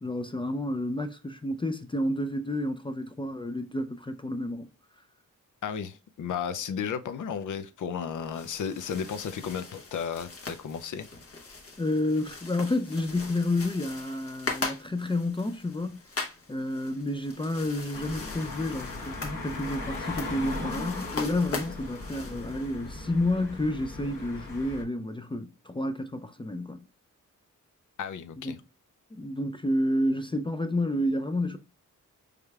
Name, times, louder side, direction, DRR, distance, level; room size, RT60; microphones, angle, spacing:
voice 1, 0.0-4.7 11.8-16.0 16.5-26.9 28.4-28.6 29.1-31.6, left 1 dB, 15° left, 0.3 m, -30 dB
voice 2, 5.6-11.1 28.0-28.6, left 7 dB, 70° left, 0.5 m, -34 dB
sound 1, 8.1-23.0, left 3 dB, 45° left, 1.0 m, -41 dB
sound 2, 17.9-24.8, left 3 dB, 85° left, 1.4 m, -38 dB
4.9 x 3.3 x 2.3 m
wide cardioid pair, 105°, 32 cm